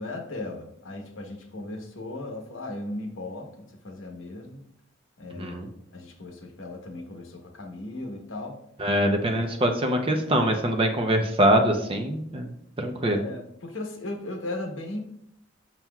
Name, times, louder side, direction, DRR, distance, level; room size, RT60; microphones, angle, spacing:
voice 1, 0.0-4.6 5.2-5.6 5.9-8.6 13.0-15.0, left 2 dB, 70° left, 3 dB, 0.9 m, -37 dB
voice 2, 5.4-5.7 8.8-12.5 12.8-13.2, right 1 dB, 25° right, 4 dB, 0.6 m, -23 dB
7.3 x 5.8 x 2.3 m, 0.75 s
head